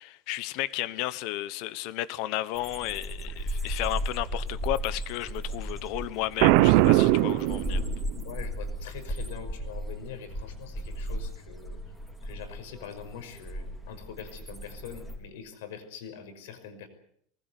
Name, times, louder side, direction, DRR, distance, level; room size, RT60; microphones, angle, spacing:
voice 1, 0.0-7.8, left 15 dB, 50° left, 1.1 m, -33 dB
sound 1, 2.5-15.2, equal, 5° left, 3.9 m, -36 dB
Boom, 6.4-8.2, right 18 dB, 55° right, 1.0 m, -20 dB
voice 2, 8.2-11.8 12.2-16.9, left 7 dB, 85° left, 5.7 m, -43 dB
24.0 x 20.0 x 8.3 m
supercardioid pair, 175°, 0 cm